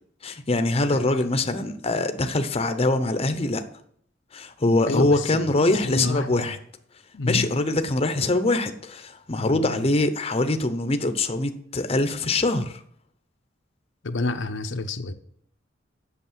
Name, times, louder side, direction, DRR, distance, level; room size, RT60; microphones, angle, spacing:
voice 1, 0.2-3.6 4.3-6.6 7.3-12.8, left 2 dB, 30° left, 0.7 m, -23 dB
voice 2, 4.9-6.5 7.1-7.5 9.4-9.8 14.0-15.1, left 2 dB, 85° left, 0.8 m, -29 dB
8.3 x 6.6 x 7.4 m
head